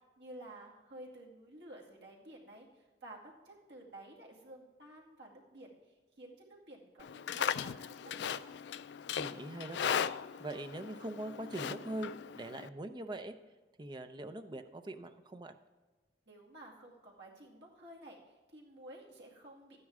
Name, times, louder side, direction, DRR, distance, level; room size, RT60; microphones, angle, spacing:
voice 1, 0.2-7.5 7.9-8.4 16.3-19.8, right 1 dB, 70° right, -2 dB, 2.4 m, -52 dB
Livestock farm animals working animals, 7.0-12.7, left 8 dB, 65° left, 0.3 m, -38 dB
voice 2, 9.1-10.0 10.4-12.1 12.4-13.3 13.8-15.5, right 1 dB, 25° right, 8 dB, 0.6 m, -42 dB
12.5 x 9.6 x 3.6 m, 1.3 s
head